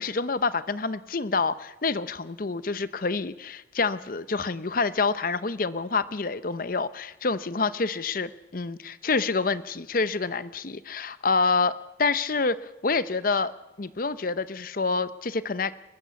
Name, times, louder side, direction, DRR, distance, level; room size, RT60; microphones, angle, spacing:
voice 1, 0.0-13.5 13.8-15.7, left 4 dB, 45° left, 14 dB, 0.7 m, -27 dB
29.5 x 15.0 x 7.0 m, 1.0 s
head